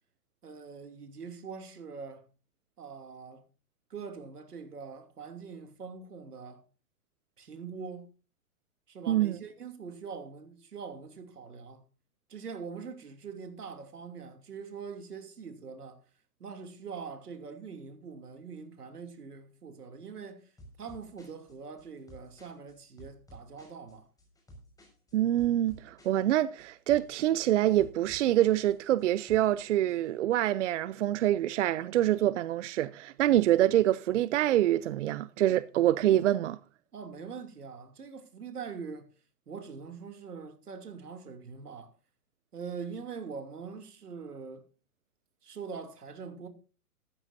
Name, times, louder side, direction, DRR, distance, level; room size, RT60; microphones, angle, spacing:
voice 1, 0.4-2.3 2.8-3.5 3.9-6.6 7.4-8.1 8.9-11.9 12.3-16.0 16.4-20.5 20.8-24.1 36.9-39.1 39.5-41.9 42.5-44.7 45.4-46.5, right 5 dB, 85° right, 2.9 m, -43 dB
voice 2, 9.1-9.4 25.1-36.6, right 13 dB, 55° right, 0.6 m, -26 dB
sound 1, 20.6-30.1, right 1 dB, 10° left, 5.8 m, -54 dB
15.0 x 13.5 x 2.7 m
hypercardioid pair, 130°, 45 cm